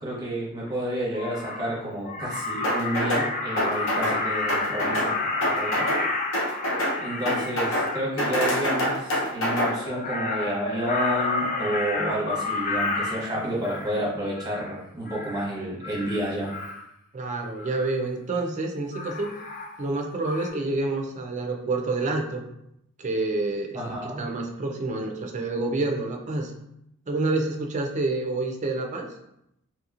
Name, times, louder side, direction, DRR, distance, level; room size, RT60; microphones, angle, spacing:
voice 1, 0.0-5.9 7.0-16.5 23.7-24.2, right 1 dB, 15° right, -5 dB, 0.9 m, -30 dB
Crow, 0.7-0.8 1.1-1.7 2.0-8.1 9.7-14.0 14.3-14.7 15.1-15.5 15.8-16.8 17.6-17.9 18.9-20.0 20.2-20.5, left 3 dB, 35° left, 0.3 m, -31 dB
Washboard Perc Drum Loop, 2.6-3.3 3.6-4.2 4.5-5.1 5.4-6.0 6.3-7.0 7.3-7.9 8.2-9.7, equal, 60° left, 0.7 m, -25 dB
voice 2, 17.1-19.3 19.8-22.4 23.0-26.5 27.1-29.1, right 2 dB, 35° right, 2 dB, 0.4 m, -28 dB
3.0 x 2.8 x 2.4 m, 0.80 s
head